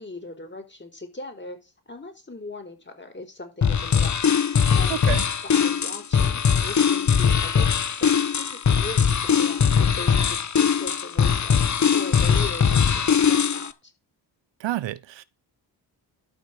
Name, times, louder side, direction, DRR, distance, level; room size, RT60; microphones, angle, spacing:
voice 1, 0.0-4.1 4.7-5.0 5.4-13.9, left 2 dB, 25° left, 4.6 m, -39 dB
sound 1, 3.6-13.7, left 7 dB, 40° left, 1.1 m, -21 dB
voice 2, 4.9-5.2 14.6-15.2, right 13 dB, 75° right, 0.9 m, -29 dB
12.0 x 5.3 x 7.5 m
cardioid pair, 65°, 44 cm